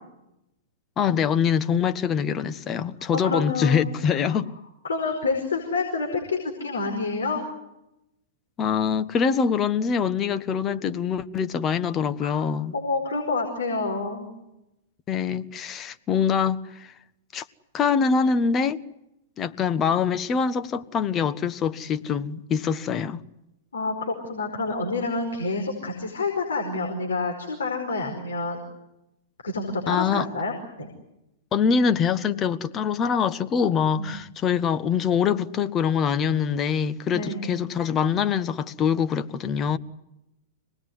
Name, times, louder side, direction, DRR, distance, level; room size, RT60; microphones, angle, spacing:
voice 1, 1.0-4.5 8.6-12.7 15.1-16.9 17.3-17.4 17.7-18.8 19.4-23.2 29.9-30.3 31.5-39.8, left 6 dB, 30° left, 1.3 m, -24 dB
voice 2, 3.2-3.9 4.3-4.4 4.8-7.5 12.2-12.4 12.7-14.3 23.7-28.6 29.4-30.5 30.8-30.9 34.0-34.1 37.1-37.6, left 3 dB, 80° left, 5.0 m, -28 dB
26.0 x 20.0 x 9.7 m
hypercardioid pair, 105°, 0 cm